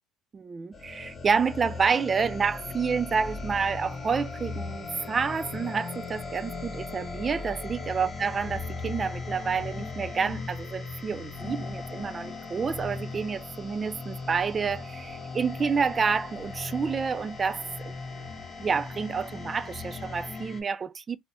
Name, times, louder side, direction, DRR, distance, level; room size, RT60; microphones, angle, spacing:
voice 1, 0.3-17.9 18.6-21.2, right 5 dB, 25° right, 0.3 m, -29 dB
sound 1, 0.7-20.6, left 3 dB, 25° left, 1.1 m, -38 dB
2.5 x 2.1 x 3.3 m
cardioid pair, 120°, 0 cm